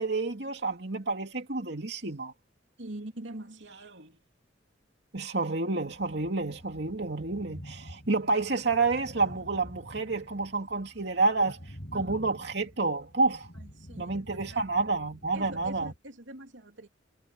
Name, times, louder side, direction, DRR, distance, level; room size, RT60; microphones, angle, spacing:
voice 1, 0.0-2.3 5.1-11.6 11.9-13.5 14.0-15.9, right 3 dB, 65° right, 2.7 m, -29 dB
voice 2, 2.8-4.2 11.9-12.4 13.6-14.2 14.5-14.7 15.3-16.9, right 1 dB, 85° right, 3.0 m, -44 dB
sound 1, 5.9-16.0, equal, 50° left, 5.5 m, -48 dB
head